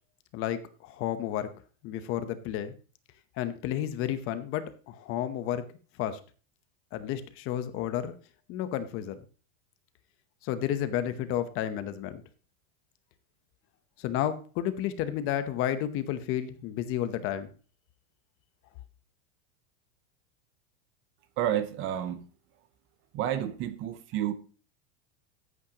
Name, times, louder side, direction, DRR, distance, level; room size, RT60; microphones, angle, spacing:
voice 1, 0.3-1.5 1.8-2.7 3.4-5.6 6.0-6.2 6.9-8.1 8.5-9.2 10.4-12.2 14.0-17.5, left 11 dB, 35° left, 0.9 m, -31 dB
voice 2, 21.4-22.3 23.1-24.3, right 11 dB, 30° right, 0.7 m, -30 dB
14.0 x 8.6 x 2.9 m
supercardioid pair, 160°, 40 cm